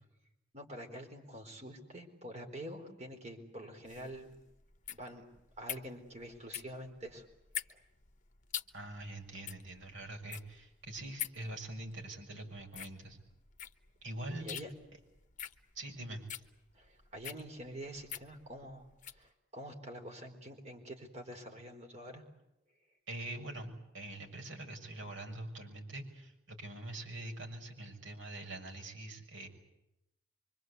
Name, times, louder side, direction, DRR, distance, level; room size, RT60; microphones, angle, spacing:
voice 1, 0.5-4.4 4.9-5.3 5.6-7.3 7.6-7.8 14.4-14.7 16.7-22.2, right 1 dB, 35° right, 3 dB, 4.3 m, -47 dB
sound 1, 3.8-19.3, left 10 dB, 40° left, 1.1 m, -45 dB
voice 2, 8.7-13.2 14.0-14.5 15.7-16.3 23.1-29.5, right 1 dB, 65° right, 2 dB, 6.3 m, -44 dB
25.5 x 25.0 x 8.2 m, 0.86 s
head